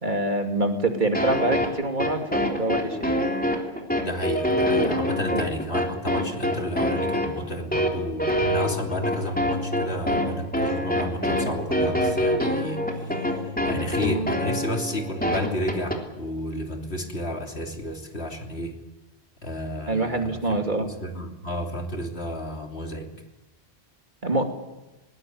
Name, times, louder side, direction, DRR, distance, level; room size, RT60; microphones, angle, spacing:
voice 1, 0.0-3.2 4.8-5.4 19.9-20.9 24.2-24.4, right 2 dB, 45° right, 4 dB, 2.9 m, -26 dB
sound 1, 1.1-16.0, equal, 10° left, 3.5 m, -25 dB
voice 2, 4.0-18.7 19.4-23.1, left 1 dB, 75° left, 3 dB, 3.4 m, -32 dB
sound 2, 8.4-14.4, left 1 dB, 65° right, 3.5 m, -37 dB
20.5 x 20.0 x 9.6 m, 1.0 s
omnidirectional pair, 1.1 m